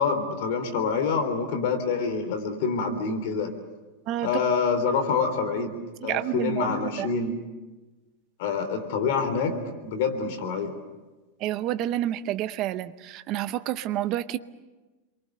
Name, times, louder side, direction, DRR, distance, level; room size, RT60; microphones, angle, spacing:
voice 1, 0.0-3.5 4.2-7.4 8.4-9.6 9.8-10.7, left 5 dB, 50° left, 7 dB, 3.5 m, -26 dB
voice 2, 6.0-6.7 7.0-7.1 11.4-14.4, right 13 dB, 30° right, 12 dB, 0.8 m, -29 dB
28.5 x 23.0 x 6.7 m, 1.2 s
supercardioid pair, 175°, 0 cm